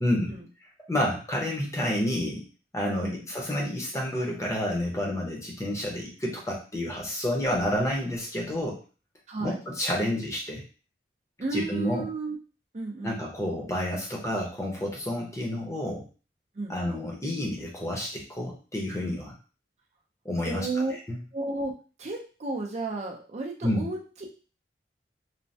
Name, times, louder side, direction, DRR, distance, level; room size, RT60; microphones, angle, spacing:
voice 1, 0.0-0.3 0.9-2.4 2.7-8.8 9.4-10.6 11.5-12.1 13.0-16.0 16.7-19.3 20.2-20.7 21.1-21.2 23.6-23.9, left 1 dB, 15° left, -2 dB, 0.7 m, -29 dB
voice 2, 9.3-9.6 11.4-12.4 12.7-13.2 16.5-16.8 20.5-20.9 21.3-21.7 22.0-24.3, right 3 dB, 40° right, 0 dB, 0.5 m, -33 dB
3.2 x 2.1 x 2.6 m, 0.36 s
head